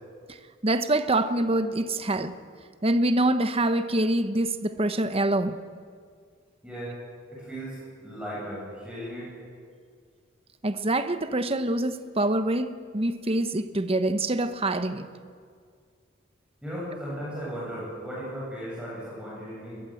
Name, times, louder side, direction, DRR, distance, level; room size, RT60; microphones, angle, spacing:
voice 1, 0.6-2.3 2.8-5.6 10.6-15.1, right 1 dB, 30° right, 10 dB, 1.0 m, -25 dB
voice 2, 6.6-6.9 7.3-7.8 8.0-9.3 16.6-19.8, equal, 5° right, -7 dB, 8.0 m, -36 dB
21.5 x 21.5 x 7.9 m, 2.1 s
head